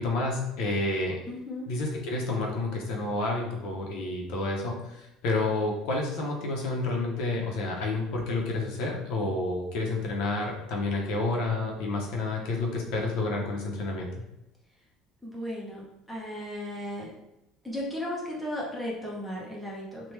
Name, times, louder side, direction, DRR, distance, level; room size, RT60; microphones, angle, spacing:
voice 1, 0.0-1.2 1.7-14.2, left 2 dB, 60° left, 0 dB, 0.6 m, -29 dB
voice 2, 1.3-1.7 15.2-15.8 16.1-17.1 17.6-20.1, left 1 dB, ahead, -5 dB, 0.5 m, -35 dB
3.1 x 2.1 x 3.2 m, 0.88 s
cardioid pair, 180°, 0 cm